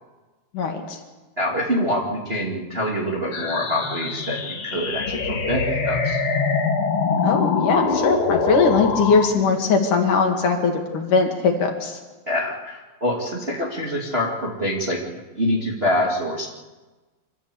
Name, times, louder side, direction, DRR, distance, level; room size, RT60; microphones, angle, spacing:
voice 1, 0.5-1.0 7.2-12.0, left 4 dB, 65° left, 3 dB, 3.7 m, -20 dB
voice 2, 1.4-6.2 12.3-16.5, left 1 dB, 20° right, -2 dB, 2.3 m, -25 dB
sound 1, 3.3-9.3, left 4 dB, 45° left, 2.6 m, -24 dB
25.5 x 14.5 x 8.4 m, 1.2 s
omnidirectional pair, 4.0 m